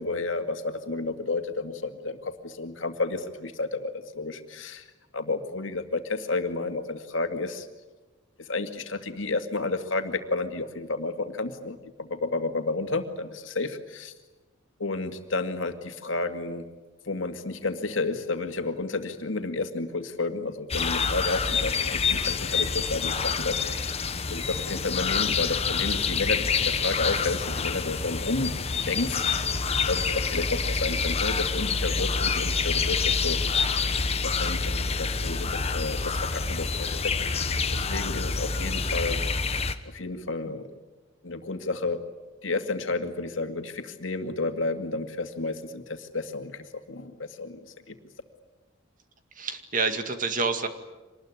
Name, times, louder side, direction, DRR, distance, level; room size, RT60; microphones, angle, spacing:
voice 1, 0.0-4.9 5.1-7.7 8.4-14.1 14.8-16.7 17.1-24.0 24.3-29.4 29.9-33.4 33.8-39.2 39.8-40.7 41.2-42.0 42.4-47.9, left 3 dB, 80° left, 7 dB, 2.2 m, -31 dB
sound 1, 20.7-39.7, left 5 dB, 30° left, 1.3 m, -27 dB
Acoustic guitar, 24.5-28.1, equal, 75° right, 6.9 m, -48 dB
voice 2, 49.4-50.7, right 4 dB, 45° right, 8 dB, 2.1 m, -28 dB
25.5 x 20.0 x 10.0 m, 1.2 s
head